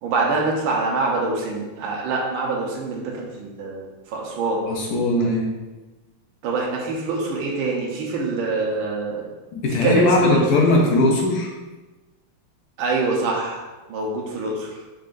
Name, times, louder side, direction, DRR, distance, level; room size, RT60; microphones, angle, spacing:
voice 1, 0.0-4.6 6.4-9.2 9.8-10.4 12.8-13.6 13.9-14.7, right 3 dB, 75° right, -2 dB, 1.6 m, -25 dB
voice 2, 4.7-5.5 9.5-11.5, left 2 dB, 75° left, 0 dB, 0.9 m, -19 dB
5.3 x 3.7 x 2.5 m, 1.2 s
omnidirectional pair, 2.4 m